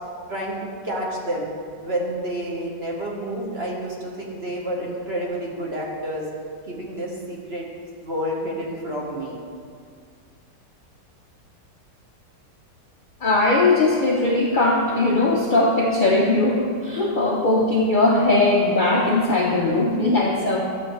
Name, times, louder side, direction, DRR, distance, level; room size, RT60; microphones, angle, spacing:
voice 1, 0.8-1.5 1.8-6.3 6.7-7.7 8.0-9.4, right 1 dB, 40° right, -2 dB, 1.2 m, -29 dB
voice 2, 13.2-20.6, left 2 dB, 60° left, -2 dB, 0.5 m, -19 dB
11.5 x 7.0 x 3.1 m, 2.2 s
omnidirectional pair, 1.8 m